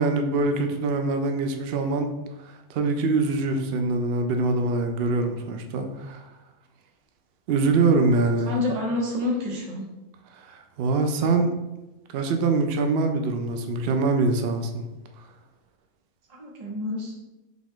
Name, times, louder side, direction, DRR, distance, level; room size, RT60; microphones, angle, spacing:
voice 1, 0.0-2.1 2.7-6.2 7.5-8.5 10.4-11.5 12.1-14.8, right 3 dB, 70° right, 5 dB, 0.5 m, -24 dB
voice 2, 8.5-9.9 16.3-17.2, left 2 dB, 30° right, -3 dB, 0.9 m, -28 dB
6.0 x 2.4 x 3.6 m, 1.0 s
omnidirectional pair, 1.6 m